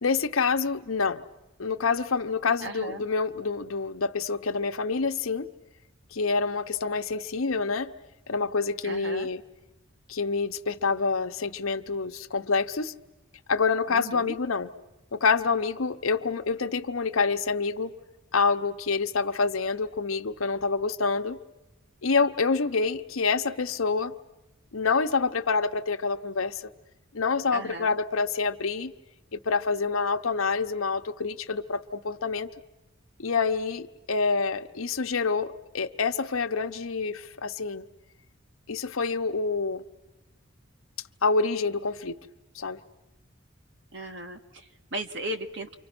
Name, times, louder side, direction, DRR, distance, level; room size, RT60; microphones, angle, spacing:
voice 1, 0.0-1.2 1.6-5.5 6.1-7.9 8.3-9.4 10.1-12.9 13.5-14.7 15.1-18.0 18.3-21.4 22.0-24.1 24.7-26.6 27.1-28.9 29.3-32.5 33.2-37.8 38.7-39.8 41.2-42.2 42.5-42.8, left 4 dB, 85° left, 8 dB, 0.9 m, -27 dB
voice 2, 2.6-3.0 8.8-9.3 13.9-14.4 27.5-28.0 43.9-45.8, right 1 dB, 60° right, 6 dB, 1.6 m, -36 dB
29.5 x 25.0 x 6.1 m, 0.99 s
head